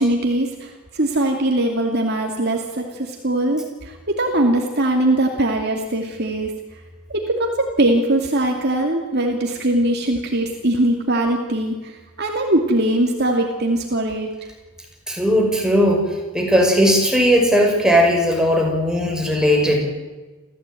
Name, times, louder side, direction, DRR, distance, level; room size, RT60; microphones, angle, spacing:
voice 1, 0.0-6.5 7.1-14.3, right 1 dB, 50° right, 2 dB, 2.6 m, -21 dB
voice 2, 15.1-16.0 16.3-19.8, equal, 5° right, 1 dB, 5.8 m, -17 dB
28.5 x 15.5 x 9.2 m, 1.2 s
head